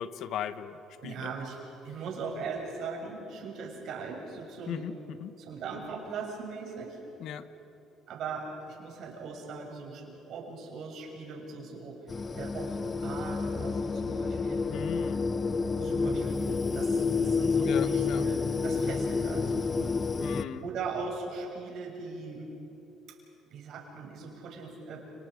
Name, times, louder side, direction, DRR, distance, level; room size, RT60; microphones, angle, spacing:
voice 1, 0.0-1.3 4.7-5.3 7.2-7.5 14.7-15.3 17.6-18.3 20.2-20.7, left 9 dB, 65° left, 12 dB, 1.1 m, -38 dB
voice 2, 1.0-1.6 1.8-4.9 5.4-7.0 8.1-14.6 15.1-15.2 15.7-19.9 20.6-22.5 23.1-23.2 23.5-25.1, right 4 dB, 65° right, 0 dB, 6.6 m, -39 dB
sound 1, 12.1-20.4, left 4 dB, 30° left, 0.9 m, -29 dB
30.0 x 28.5 x 5.2 m, 2.9 s
cardioid pair, 95°, 0 cm